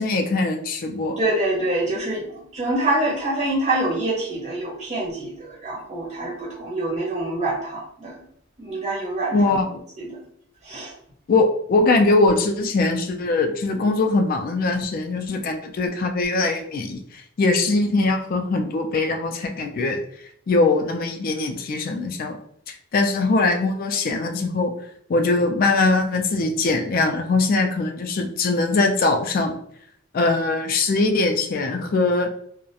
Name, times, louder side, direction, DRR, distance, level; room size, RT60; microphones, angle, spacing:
voice 1, 0.0-1.2 9.3-9.7 11.3-20.0 20.5-22.4 22.7-24.7 25.1-29.5 30.1-32.3, left 3 dB, 45° left, 5 dB, 0.3 m, -21 dB
voice 2, 1.2-8.1 8.6-9.6 10.0-10.2 10.6-10.9, right 2 dB, 30° right, -4 dB, 0.6 m, -26 dB
2.3 x 2.1 x 2.7 m, 0.66 s
head